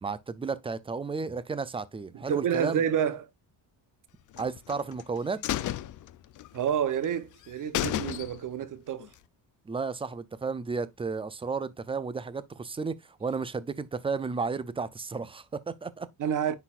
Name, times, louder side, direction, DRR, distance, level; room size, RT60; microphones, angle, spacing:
voice 1, 0.0-2.8 4.4-5.4 9.7-16.1, right 4 dB, 15° right, 0.4 m, -33 dB
voice 2, 2.1-3.3 6.5-9.1 16.2-16.5, right 8 dB, 45° right, 0.9 m, -29 dB
sound 1, 4.3-5.0 5.4-6.7 7.0-7.1 7.4-7.5 7.7-8.6 9.0-9.1, left 13 dB, 45° left, 0.5 m, -32 dB
9.9 x 4.1 x 2.4 m
cardioid pair, 145°, 44 cm